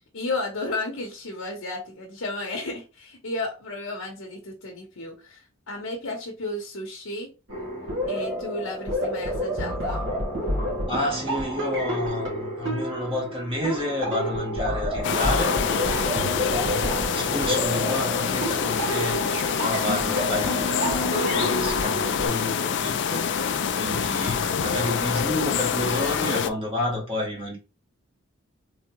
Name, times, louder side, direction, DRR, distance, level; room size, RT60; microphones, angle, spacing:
voice 1, 0.1-7.3 8.1-10.1, left 2 dB, 70° left, 0.9 m, -33 dB
sound 1, 7.5-22.3, equal, 60° right, 1.8 m, -29 dB
voice 2, 10.9-16.1 16.9-27.6, left 1 dB, 25° right, 1.7 m, -30 dB
sound 2, 15.0-26.5, left 7 dB, 55° left, 0.3 m, -26 dB
3.6 x 3.5 x 2.9 m
head